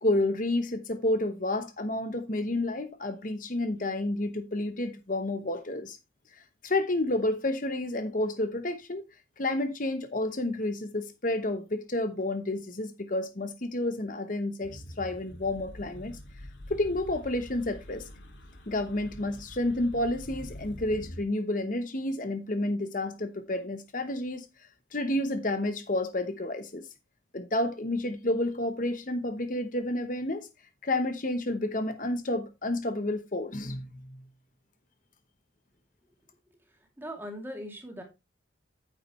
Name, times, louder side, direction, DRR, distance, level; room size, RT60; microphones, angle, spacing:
voice 1, 0.0-6.0 6.3-9.1 9.4-16.2 16.7-18.1 18.7-26.9 27.3-30.5 30.8-34.2, left 1 dB, 45° left, 1.0 m, -30 dB
sound 1, 14.6-21.2, equal, 70° left, 2.7 m, -45 dB
voice 2, 36.5-38.0, equal, 10° right, 2.7 m, -41 dB
9.6 x 8.3 x 3.2 m
head